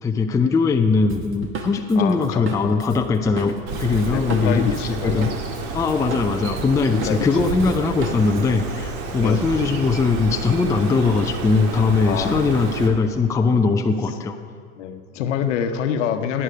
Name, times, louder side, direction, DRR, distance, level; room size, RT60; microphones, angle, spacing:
voice 1, 0.0-5.4 5.7-14.4, left 4 dB, 10° left, 5 dB, 0.5 m, -20 dB
Drum kit, 1.1-5.6 5.9-8.4, right 4 dB, 30° right, 1.8 m, -33 dB
voice 2, 2.0-2.4 4.1-5.4 6.1-6.2 6.9-7.7 9.2-9.5 12.0-12.5 14.0-14.1 14.8-16.4, left 8 dB, 55° left, 8 dB, 1.1 m, -26 dB
Bird, 3.7-12.9, right 4 dB, 45° right, 2.0 m, -30 dB
17.5 x 10.0 x 5.1 m, 2.2 s
figure-of-eight pair, 75°, 42 cm